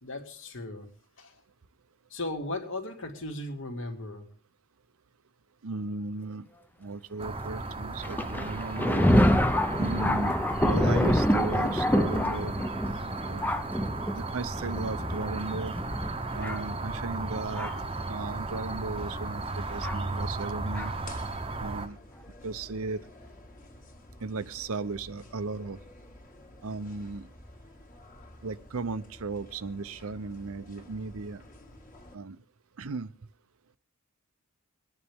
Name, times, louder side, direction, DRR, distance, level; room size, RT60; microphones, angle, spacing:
voice 1, 0.0-0.9 1.2-1.3 2.1-4.3, left 2 dB, 60° left, 3 dB, 2.4 m, -36 dB
voice 2, 5.6-6.5 6.8-9.1 9.8-12.6 13.3-13.6 14.1-15.8 16.3-17.7 18.1-20.9 21.6-22.0 22.4-23.0 24.2-25.8 26.6-27.3 28.4-31.4 32.1-32.4 32.8-33.1, right 3 dB, 70° right, 16 dB, 0.7 m, -36 dB
sound 1, 7.2-21.9, right 3 dB, 25° right, 0.9 m, -35 dB
Thunder, 8.0-17.9 18.7-18.8 19.8-20.0 20.7-20.9, equal, 10° left, 0.6 m, -27 dB
sound 2, 17.4-32.2, left 1 dB, 35° left, 2.3 m, -51 dB
23.0 x 9.8 x 3.6 m, 0.43 s
head